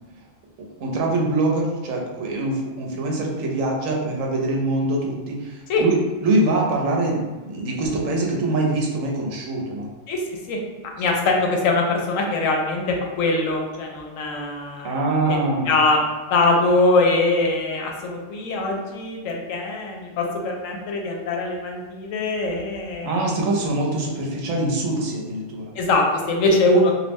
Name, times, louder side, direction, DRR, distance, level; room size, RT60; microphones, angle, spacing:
voice 1, 0.8-6.0 6.2-9.9 14.8-15.7 23.0-25.6, right 2 dB, 80° right, -1 dB, 1.0 m, -24 dB
voice 2, 11.0-15.4 15.7-16.0 16.3-23.2 25.7-26.9, left 2 dB, 80° left, 1 dB, 1.0 m, -22 dB
2.5 x 2.0 x 3.4 m, 1.3 s
omnidirectional pair, 1.4 m